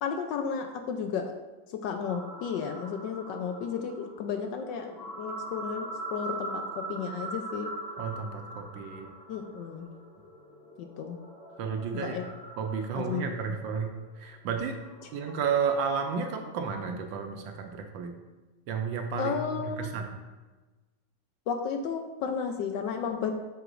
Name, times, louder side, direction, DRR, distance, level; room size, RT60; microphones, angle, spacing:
voice 1, 0.0-1.3 1.7-7.7 9.3-9.9 10.8-11.2 11.9-12.2 12.9-13.3 19.2-19.9 21.5-23.3, left 6 dB, 80° left, 5 dB, 1.3 m, -33 dB
sound 1, 2.0-16.7, right 2 dB, 45° left, 2.9 m, -42 dB
voice 2, 8.0-9.1 11.6-12.2 12.6-14.8 15.1-18.2 18.7-20.1, right 6 dB, 85° right, 4 dB, 1.4 m, -32 dB
7.9 x 7.7 x 2.5 m, 1.2 s
omnidirectional pair, 2.0 m